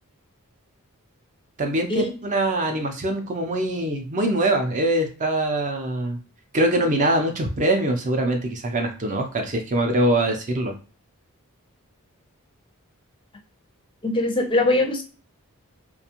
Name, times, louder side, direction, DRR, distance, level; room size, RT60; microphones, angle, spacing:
voice 1, 1.6-6.2 6.5-10.7, right 1 dB, 35° right, 4 dB, 0.5 m, -23 dB
voice 2, 14.0-15.0, left 2 dB, 20° left, 4 dB, 0.5 m, -21 dB
2.4 x 2.2 x 2.8 m, 0.36 s
head